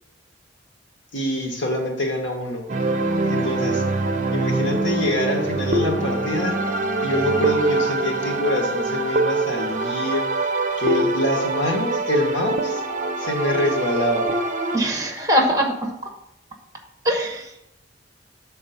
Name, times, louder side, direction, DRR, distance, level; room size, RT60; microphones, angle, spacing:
voice 1, 1.1-2.7 3.3-3.8 4.3-6.6 7.0-10.2 10.8-12.8 13.2-14.3, left 1 dB, 75° left, 2 dB, 1.5 m, -25 dB
sound 1, 2.7-14.8, right 2 dB, 45° right, 0.6 m, -24 dB
voice 2, 14.7-15.9 17.0-17.7, equal, 20° right, 3 dB, 1.1 m, -22 dB
6.9 x 4.3 x 5.8 m, 0.84 s
head